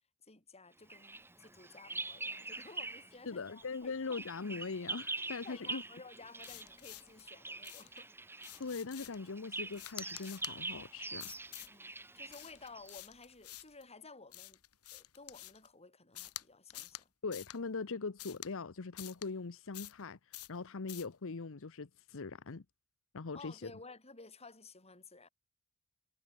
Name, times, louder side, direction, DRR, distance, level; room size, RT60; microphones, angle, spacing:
voice 1, 0.2-4.2 5.2-8.1 11.7-14.6 14.9-17.1 23.3-25.3, left 3 dB, 30° left, 7.7 m, -54 dB
Bird vocalization bird call bird song, 0.9-3.2 3.5-13.0, right 3 dB, 10° right, 1.7 m, -44 dB
voice 2, 3.3-5.8 8.6-11.3 17.2-22.6 23.1-23.7, left 4 dB, 65° left, 0.9 m, -41 dB
sound 1, 6.4-7.2 7.6-8.0 8.4-9.3 9.7-10.6 11.2-11.8 12.3-13.8 14.3-15.7 16.2-16.4 16.7-17.0 17.3-17.6 18.2-18.5 19.0-19.3 19.7-20.0 20.3-20.6 20.9-21.1, left 15 dB, 90° left, 2.1 m, -48 dB
head